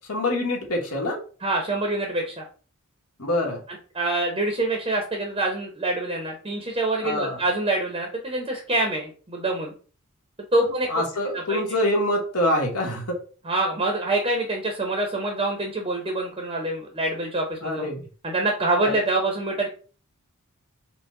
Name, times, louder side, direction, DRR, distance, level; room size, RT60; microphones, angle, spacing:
voice 1, 0.1-1.2 3.2-3.6 7.0-7.4 10.9-13.2 17.6-18.0 18.8-18.9, left 1 dB, 85° left, 1 dB, 1.2 m, -25 dB
voice 2, 1.4-2.4 3.7-9.7 10.5-10.9 11.3-11.6 13.4-17.9 18.2-19.7, right 2 dB, 25° right, 1 dB, 0.6 m, -26 dB
4.4 x 2.1 x 3.6 m, 0.39 s
head